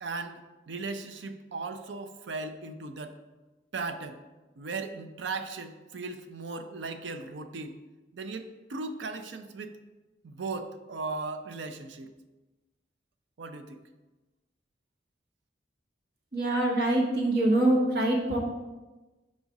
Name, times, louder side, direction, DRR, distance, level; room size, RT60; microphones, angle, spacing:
voice 1, 0.0-3.2 3.7-4.2 4.6-7.8 8.1-9.7 10.2-12.1 13.4-13.8, right 3 dB, 85° right, 9 dB, 0.5 m, -37 dB
voice 2, 16.3-18.4, right 1 dB, 65° right, -1 dB, 1.1 m, -24 dB
4.9 x 4.0 x 4.7 m, 1.2 s
head